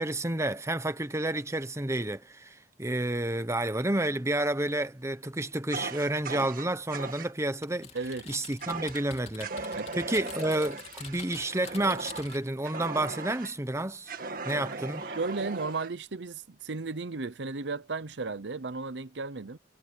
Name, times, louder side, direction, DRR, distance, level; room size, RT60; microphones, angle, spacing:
voice 1, 0.0-7.9 8.3-14.1 14.4-15.0, right 1 dB, 15° right, 1.0 m, -30 dB
Fire, 5.7-7.3 8.6-9.1 9.4-13.5 14.1-15.9, right 3 dB, 55° right, 1.9 m, -38 dB
Typing, 7.6-12.5, left 6 dB, 35° left, 3.2 m, -46 dB
voice 2, 7.9-8.3 9.7-9.9 15.0-19.6, right 3 dB, 75° right, 0.8 m, -35 dB
head